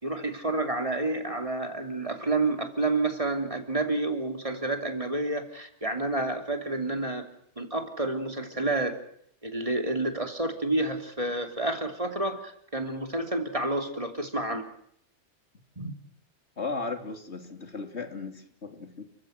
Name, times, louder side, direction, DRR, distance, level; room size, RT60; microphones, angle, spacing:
voice 1, 0.0-7.2 7.6-8.9 9.4-14.7 15.8-15.9, right 2 dB, 30° right, 5 dB, 3.1 m, -29 dB
voice 2, 16.6-19.0, left 4 dB, 65° left, 6 dB, 3.3 m, -36 dB
29.5 x 15.5 x 9.4 m, 0.68 s
omnidirectional pair, 1.2 m